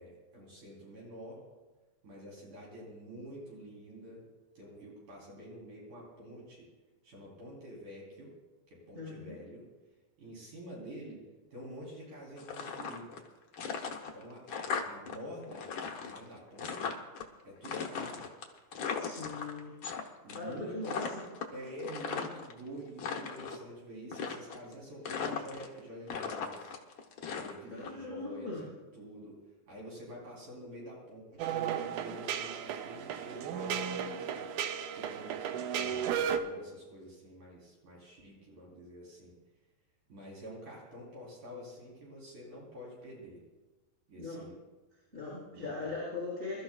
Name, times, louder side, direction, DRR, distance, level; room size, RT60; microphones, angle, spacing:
voice 1, 0.0-1.4 2.0-4.3 4.6-6.7 7.0-8.3 8.7-9.6 10.2-11.2 11.5-13.2 14.1-15.7 16.0-17.0 17.5-18.3 20.2-21.0 21.5-26.7 27.4-28.7 28.9-29.4 29.7-34.5 34.9-35.4 35.7-39.3 40.1-43.4 44.1-44.6 45.5-46.0, equal, 60° right, -5 dB, 5.0 m, -47 dB
voice 2, 8.9-9.4 19.0-19.7 20.3-21.2 27.7-28.7 44.2-44.5 45.1-46.6, left 3 dB, 20° right, -7 dB, 5.8 m, -40 dB
sound 1, 12.4-13.3 13.5-15.2 15.4-17.2 17.6-20.0 20.3-20.6 20.8-22.5 22.9-23.6 24.1-24.7 25.0-25.8 26.1-27.9, left 6 dB, 80° left, 1.1 m, -38 dB
sound 2, 31.4-36.4, right 8 dB, 75° right, 1.8 m, -34 dB
26.5 x 13.5 x 2.4 m, 1.2 s
omnidirectional pair, 4.1 m